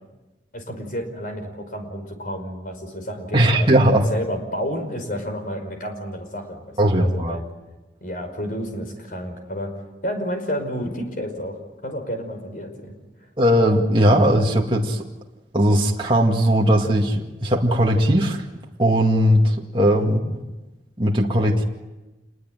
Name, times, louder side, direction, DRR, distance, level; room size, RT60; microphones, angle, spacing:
voice 1, 0.5-7.4 8.0-9.7 10.0-11.6 11.8-13.0 20.0-20.3, equal, 50° left, 6 dB, 5.3 m, -30 dB
voice 2, 3.3-4.1 6.8-7.4 13.4-15.1 15.5-18.4 18.8-20.2 21.0-21.6, equal, 30° right, -1 dB, 2.1 m, -18 dB
28.0 x 21.5 x 9.3 m, 1.1 s
head